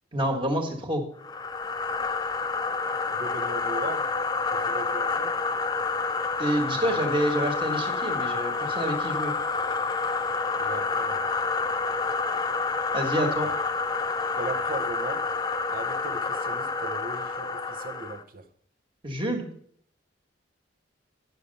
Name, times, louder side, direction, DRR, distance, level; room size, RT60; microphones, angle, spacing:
voice 1, 0.1-1.0 6.4-9.3 12.9-13.5 19.0-19.5, right 1 dB, 25° right, 1.6 m, -28 dB
sound 1, 1.2-18.2, left 4 dB, 20° left, 0.4 m, -28 dB
voice 2, 3.1-4.2 4.5-5.4 10.6-11.3 13.4-13.5 14.3-15.3 15.7-18.5, right 2 dB, 50° right, 0.8 m, -38 dB
10.0 x 6.7 x 5.3 m
head